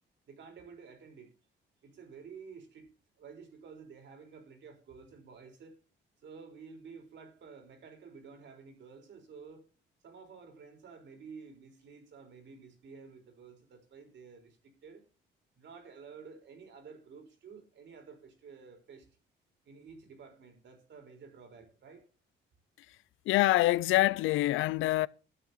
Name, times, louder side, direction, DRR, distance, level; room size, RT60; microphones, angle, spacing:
voice 1, 0.3-1.3 1.8-2.9 3.2-5.8 6.2-9.7 10.0-15.0 15.6-19.1 19.7-22.0, right 5 dB, 65° right, 4.0 m, -51 dB
voice 2, 23.3-25.1, left 17 dB, 90° left, 0.5 m, -25 dB
12.5 x 8.3 x 4.0 m
cardioid pair, 90°, 20 cm